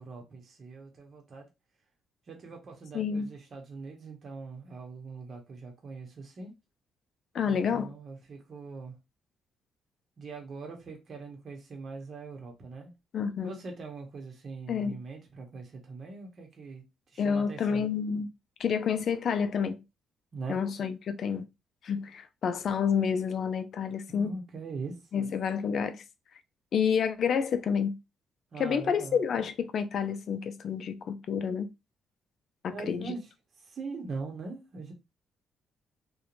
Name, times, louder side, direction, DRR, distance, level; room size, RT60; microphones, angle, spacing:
voice 1, 0.0-1.5 2.3-6.5 7.4-8.9 10.2-12.9 13.4-17.8 20.3-20.6 24.1-25.0 28.5-29.2 32.7-33.3 33.6-34.9, right 4 dB, 50° right, 0.8 m, -42 dB
voice 2, 2.9-3.3 7.3-7.9 13.1-13.5 14.7-15.0 17.2-18.3 18.6-19.8 20.5-21.5 21.8-24.3 25.1-26.0 26.7-28.0 28.6-31.7 32.6-33.1, left 7 dB, 60° left, 0.3 m, -29 dB
2.4 x 2.1 x 2.9 m
cardioid pair, 90°, 0 cm